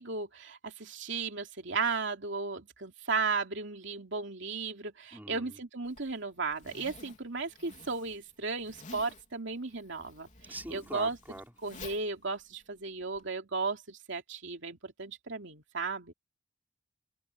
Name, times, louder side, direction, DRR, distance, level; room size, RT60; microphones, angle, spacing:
voice 1, 0.0-11.2 11.6-16.1, right 4 dB, 70° right, 2.8 m, -35 dB
voice 2, 5.1-5.6 10.5-11.5, right 1 dB, 10° right, 4.2 m, -43 dB
Zipper (clothing), 5.8-13.3, left 3 dB, 40° left, 3.3 m, -52 dB
open air
head